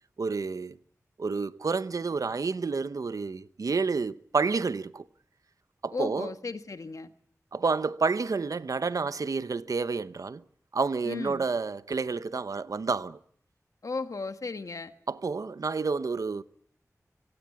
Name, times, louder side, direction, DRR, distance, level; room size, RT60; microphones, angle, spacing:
voice 1, 0.2-0.8 1.2-5.1 5.8-6.3 7.5-10.4 10.7-13.2 15.1-16.4, right 4 dB, 75° right, 0.8 m, -29 dB
voice 2, 5.9-7.1 11.0-11.4 13.8-14.9, left 3 dB, 70° left, 1.6 m, -35 dB
25.5 x 16.5 x 8.4 m
wide cardioid pair, 85°, 6 cm